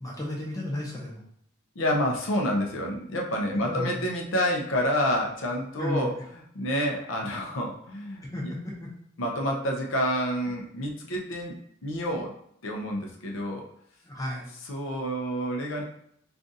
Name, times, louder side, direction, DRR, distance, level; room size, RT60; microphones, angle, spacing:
voice 1, 0.0-1.2 3.5-4.0 5.8-6.1 8.2-8.9 11.0-11.1 14.0-14.5, left 1 dB, 15° left, -3 dB, 0.6 m, -33 dB
voice 2, 1.8-8.5 9.2-12.3 12.6-13.7 14.6-15.8, equal, 70° left, 0 dB, 0.5 m, -29 dB
2.5 x 2.4 x 3.9 m, 0.68 s
head